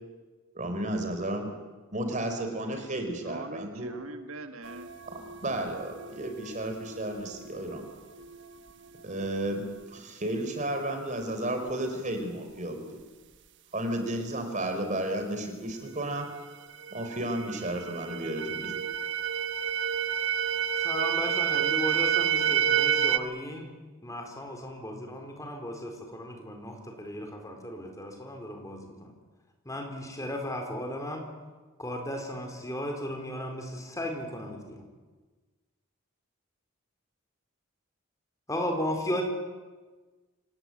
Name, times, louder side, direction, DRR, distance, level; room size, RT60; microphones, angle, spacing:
voice 1, 0.5-1.5 1.9-3.9 5.1-7.8 9.0-12.9 13.7-16.3 16.9-18.7, right 1 dB, 35° right, 4.1 m, -33 dB
voice 2, 3.2-4.9, right 2 dB, 75° right, 1.7 m, -42 dB
sound 1, 4.6-10.0 16.2-16.3 16.7-23.2, right 9 dB, 55° right, 1.3 m, -30 dB
voice 3, 20.8-23.7 24.0-29.1 29.6-31.2 31.8-34.8 38.5-39.2, left 1 dB, 15° left, 4.2 m, -35 dB
27.5 x 18.0 x 8.7 m
head